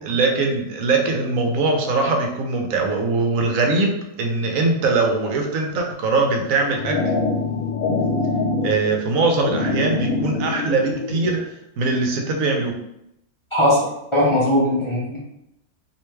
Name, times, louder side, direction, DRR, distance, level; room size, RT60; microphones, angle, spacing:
voice 1, 0.0-7.0 8.6-11.5 11.8-12.8, right 3 dB, 75° right, 2 dB, 1.0 m, -21 dB
sound 1, 6.4-11.4, left 3 dB, 80° left, 1.1 m, -25 dB
voice 2, 13.5-15.2, left 1 dB, 30° left, -7 dB, 0.7 m, -19 dB
3.3 x 2.8 x 3.1 m, 0.79 s
omnidirectional pair, 1.5 m